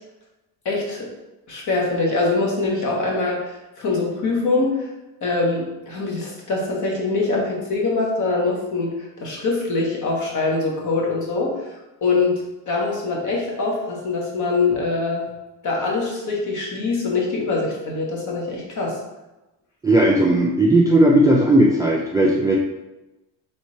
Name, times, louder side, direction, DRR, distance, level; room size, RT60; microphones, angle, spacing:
voice 1, 0.6-1.1 1.5-4.8 5.2-11.6 12.0-12.4 12.7-15.2 15.6-19.0, left 3 dB, 45° left, -2 dB, 1.4 m, -23 dB
voice 2, 19.8-22.6, right 1 dB, 10° right, -2 dB, 0.3 m, -16 dB
3.6 x 3.1 x 4.2 m, 1.0 s
cardioid pair, 115°, 40 cm